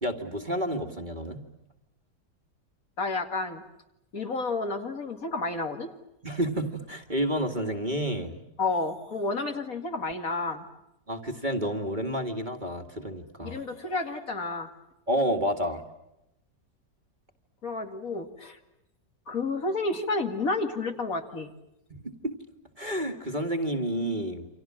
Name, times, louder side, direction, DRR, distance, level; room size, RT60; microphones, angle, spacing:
voice 1, 0.0-1.4 6.2-8.4 11.1-13.6 15.1-15.8 21.9-22.4 22.8-24.5, equal, 30° right, 5 dB, 2.0 m, -30 dB
voice 2, 3.0-3.6 4.1-5.9 8.6-10.7 13.4-14.7 17.6-18.6 19.3-21.5, left 3 dB, 55° left, 6 dB, 2.7 m, -30 dB
29.0 x 26.5 x 7.5 m, 0.88 s
omnidirectional pair, 1.8 m